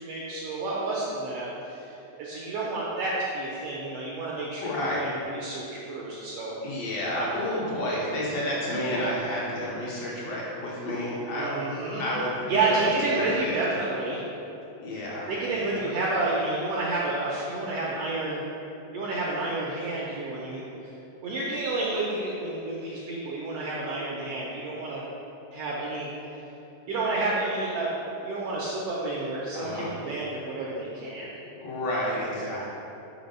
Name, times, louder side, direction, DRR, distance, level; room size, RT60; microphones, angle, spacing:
voice 1, 0.0-6.6 7.1-7.4 11.4-12.0 12.5-14.2 15.3-18.4 18.9-20.9 21.2-25.0 25.5-26.1 26.9-27.9 28.2-31.3, right 2 dB, 80° right, -5 dB, 1.4 m, -30 dB
voice 2, 4.6-5.0 6.6-11.5 12.0-12.8 13.0-13.6 14.8-15.8 29.5-29.9 31.5-32.7, left 1 dB, 65° left, -5 dB, 1.8 m, -30 dB
5.2 x 4.1 x 5.2 m, 2.9 s
omnidirectional pair, 3.5 m